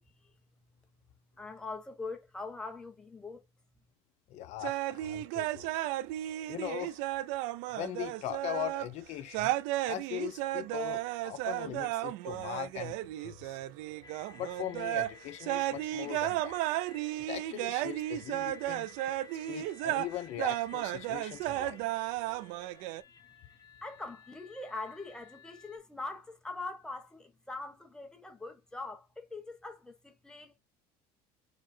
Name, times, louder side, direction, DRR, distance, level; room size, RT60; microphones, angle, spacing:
voice 1, 0.1-0.9 1.3-3.5 23.1-30.6, left 3 dB, 5° left, 1.2 m, -43 dB
voice 2, 4.3-5.9 6.5-7.0 7.7-9.5 9.8-13.6 14.4-16.6 17.3-18.9 19.5-21.8, left 12 dB, 55° left, 0.6 m, -40 dB
sound 1, 4.6-8.9 9.3-15.1 15.4-23.0, right 16 dB, 80° right, 0.4 m, -34 dB
sound 2, 14.0-25.8, left 6 dB, 25° left, 1.1 m, -55 dB
4.9 x 2.1 x 4.3 m
cardioid pair, 135°, 13 cm